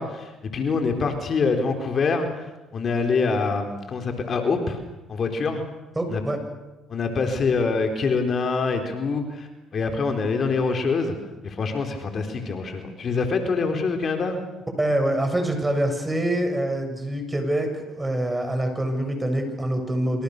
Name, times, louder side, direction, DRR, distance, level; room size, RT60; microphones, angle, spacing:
voice 1, 0.0-4.8 5.1-5.6 6.1-6.2 6.9-11.2 11.4-14.4, left 4 dB, 50° left, 4 dB, 4.2 m, -25 dB
voice 2, 6.0-6.4 14.8-20.2, right 1 dB, 15° right, 5 dB, 7.5 m, -25 dB
26.5 x 26.5 x 6.8 m, 1.0 s
supercardioid pair, 70°, 0 cm